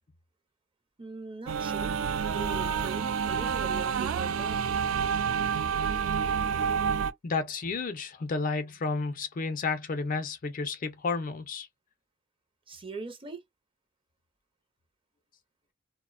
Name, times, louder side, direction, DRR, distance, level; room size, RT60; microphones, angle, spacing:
voice 1, 1.0-2.0 2.3-4.7 12.7-13.4, right 4 dB, 25° right, 0.5 m, -41 dB
sound 1, 1.5-7.1, right 7 dB, 75° right, 0.3 m, -28 dB
voice 2, 7.2-11.7, left 4 dB, 40° left, 0.4 m, -31 dB
2.5 x 2.0 x 2.4 m
head